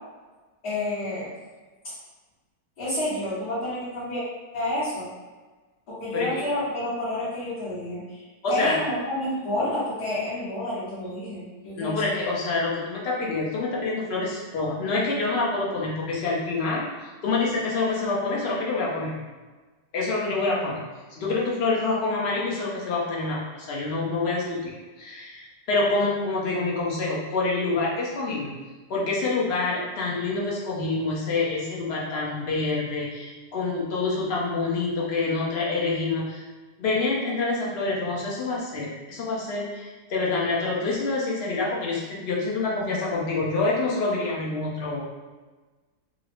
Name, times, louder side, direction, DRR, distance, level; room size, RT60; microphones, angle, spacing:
voice 1, 0.6-1.3 2.8-4.2 4.5-5.1 5.9-8.2 8.5-12.0, left 1 dB, 70° left, -13 dB, 1.6 m, -29 dB
voice 2, 8.4-8.8 11.8-19.1 19.9-20.8 21.1-24.7 25.0-28.6 28.9-36.4 36.8-45.0, left 3 dB, 50° left, -4 dB, 0.8 m, -27 dB
3.9 x 2.0 x 3.0 m, 1.3 s
omnidirectional pair, 1.7 m